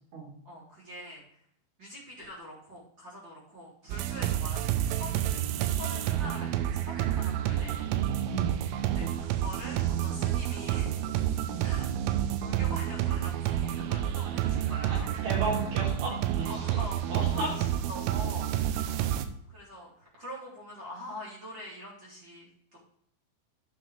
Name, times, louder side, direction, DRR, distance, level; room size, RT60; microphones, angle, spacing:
voice 1, 0.4-1.2 1.8-5.2 5.7-7.9 8.9-11.0 11.6-11.9 12.2-15.1 16.5-18.5 19.5-22.8, left 1 dB, 25° right, -6 dB, 3.3 m, -44 dB
sound 1, 3.9-19.3, right 11 dB, 85° right, 3.3 m, -29 dB
voice 2, 14.9-16.8 17.1-17.5, right 2 dB, 65° right, -3 dB, 5.7 m, -34 dB
12.0 x 7.9 x 3.3 m, 0.68 s
omnidirectional pair, 5.9 m